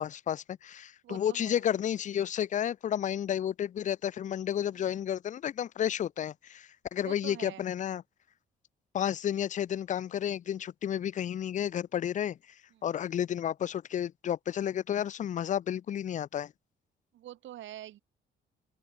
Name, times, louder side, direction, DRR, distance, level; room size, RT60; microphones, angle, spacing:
voice 1, 0.0-8.0 8.9-12.4 12.8-16.5, left 10 dB, 40° left, 0.4 m, -31 dB
voice 2, 1.0-1.6 4.7-5.0 7.0-7.7 12.7-12.8 17.1-18.0, right 13 dB, 70° right, 1.1 m, -45 dB
open air
cardioid pair, 90°, 20 cm